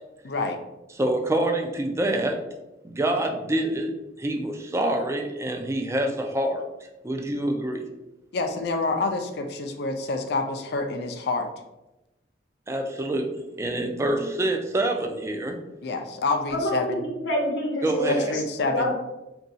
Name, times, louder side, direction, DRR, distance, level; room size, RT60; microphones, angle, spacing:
voice 1, 0.2-0.6 8.3-11.5 15.8-17.0 18.1-18.9, left 3 dB, 60° left, 6 dB, 0.4 m, -27 dB
voice 2, 1.0-2.4 2.8-3.9 4.2-6.6 7.0-7.8 12.7-13.3 13.6-15.6 17.8-18.2, right 1 dB, 15° right, 4 dB, 0.3 m, -26 dB
voice 3, 16.5-18.4 18.7-18.9, equal, 85° left, 0 dB, 0.9 m, -26 dB
2.6 x 2.3 x 3.8 m, 0.98 s
head